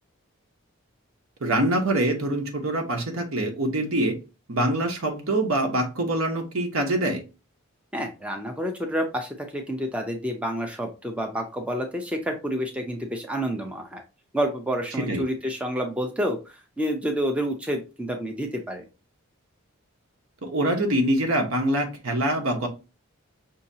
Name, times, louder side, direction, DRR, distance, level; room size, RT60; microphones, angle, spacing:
voice 1, 1.4-4.2 4.5-7.2 15.1-15.2 20.4-22.7, right 1 dB, 70° right, 4 dB, 1.0 m, -24 dB
voice 2, 7.9-14.0 14.3-16.4 16.8-18.8, equal, 5° right, 2 dB, 0.5 m, -29 dB
5.5 x 2.8 x 2.7 m, 0.30 s
head